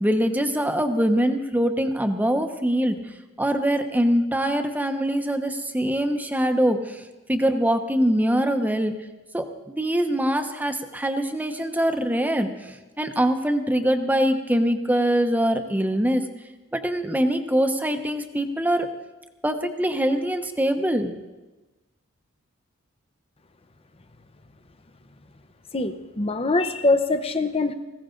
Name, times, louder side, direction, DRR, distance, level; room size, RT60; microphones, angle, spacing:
voice 1, 0.0-3.0 3.4-7.0 7.3-9.0 9.3-16.2 16.7-18.9 19.4-21.1, equal, 10° right, 7 dB, 0.9 m, -23 dB
voice 2, 25.7-27.7, left 2 dB, 30° left, 10 dB, 0.8 m, -23 dB
19.0 x 16.0 x 3.9 m, 1.1 s
head